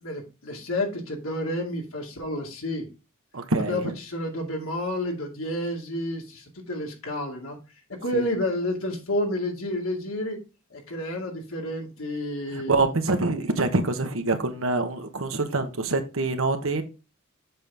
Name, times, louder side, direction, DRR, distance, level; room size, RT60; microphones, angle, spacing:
voice 1, 0.0-2.9 3.6-7.6 8.0-10.4 10.7-12.7, left 1 dB, 80° left, 2.4 m, -30 dB
voice 2, 3.3-3.9 8.1-8.2 12.5-16.8, right 3 dB, 70° right, 1.2 m, -25 dB
7.5 x 5.9 x 3.6 m
head